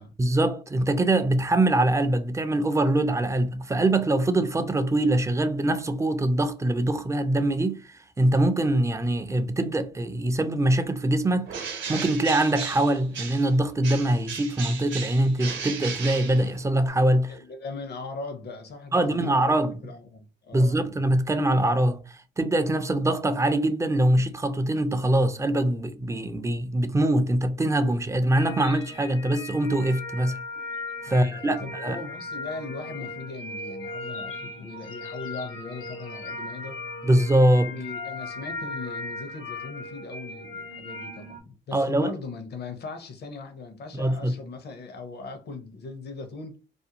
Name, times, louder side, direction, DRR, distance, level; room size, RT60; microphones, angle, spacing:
voice 1, 0.2-17.4 18.9-19.8 20.5-30.3 31.0-32.0 37.0-37.7 41.7-42.1 43.9-44.3, right 1 dB, 15° right, 0.3 m, -23 dB
Bird, 11.5-13.5 13.8-16.9, right 6 dB, 65° right, 0.8 m, -35 dB
voice 2, 16.8-19.5 19.8-20.8 31.1-36.8 37.5-46.6, left 4 dB, 55° left, 0.7 m, -39 dB
sound 1, 28.3-41.4, left 2 dB, 85° left, 0.8 m, -37 dB
2.5 x 2.0 x 2.8 m
cardioid pair, 90°, 20 cm